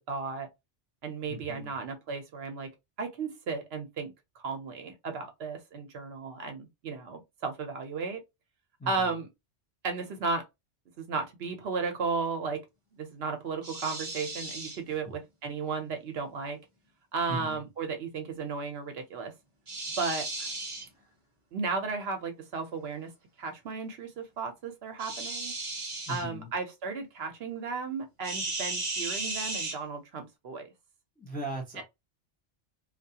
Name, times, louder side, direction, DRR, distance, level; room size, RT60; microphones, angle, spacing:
voice 1, 0.1-0.5 1.0-2.7 3.0-8.2 8.9-9.3 9.8-10.4 11.0-12.6 13.0-16.6 17.1-19.3 20.0-20.3 21.5-23.1 23.4-25.5 26.1-30.7 31.8-31.9, right 4 dB, 65° right, 0.8 m, -34 dB
voice 2, 1.3-1.7 8.8-9.2 17.3-17.6 26.1-26.5 31.2-31.8, right 1 dB, 10° left, 0.5 m, -38 dB
sound 1, 13.6-14.8 19.7-20.9 25.0-26.2 28.2-29.8, right 2 dB, 35° right, 0.6 m, -35 dB
2.3 x 2.3 x 2.7 m
omnidirectional pair, 1.2 m